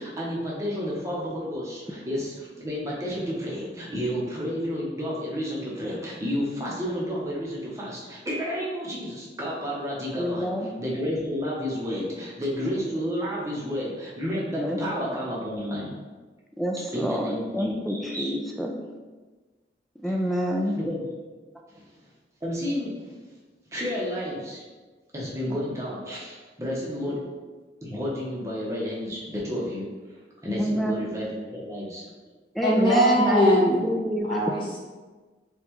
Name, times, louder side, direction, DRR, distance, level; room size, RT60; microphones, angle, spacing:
voice 1, 0.0-10.5 10.8-15.9 16.9-18.3 20.8-21.1 21.7-21.8 22.4-23.1 23.7-24.6 25.1-27.2 27.8-29.8 30.4-32.0, equal, 15° right, -5 dB, 0.8 m, -31 dB
voice 2, 10.2-10.7 14.6-15.2 16.6-18.7 20.0-20.8 30.6-31.0 32.5-34.3, equal, ahead, 0 dB, 0.3 m, -27 dB
voice 3, 32.6-33.8 34.2-34.8, equal, 30° left, -6 dB, 0.9 m, -21 dB
5.3 x 2.4 x 3.0 m, 1.3 s
head